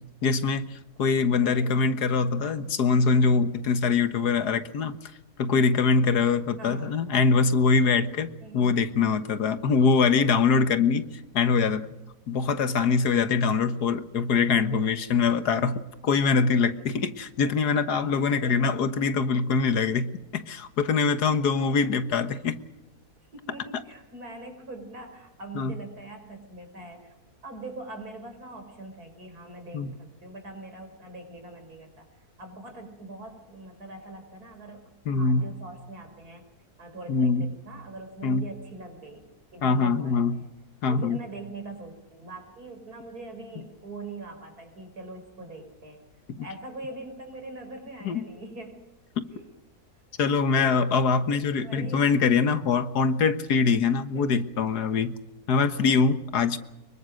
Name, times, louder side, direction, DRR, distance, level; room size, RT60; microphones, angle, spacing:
voice 1, 0.2-5.0 5.4-11.1 11.3-11.9 12.3-22.6 25.6-25.7 29.7-29.9 35.1-35.5 37.1-37.5 38.2-38.4 39.6-40.4 40.8-41.2 46.4-46.5 48.0-48.3 50.2-55.2 55.5-56.6, left 5 dB, 90° left, 10 dB, 1.9 m, -23 dB
voice 2, 1.4-1.8 6.6-7.0 8.4-8.8 9.7-10.0 14.7-15.0 16.6-17.1 17.4-18.7 21.4-21.9 23.3-27.2 27.4-32.1 32.4-36.4 36.8-40.5 40.9-46.0 46.4-48.8 49.3-49.5 50.6-51.0 51.6-52.1 54.2-54.3 55.6-55.9, right 2 dB, 70° right, 5 dB, 5.7 m, -43 dB
25.5 x 23.0 x 6.5 m, 0.93 s
omnidirectional pair, 1.7 m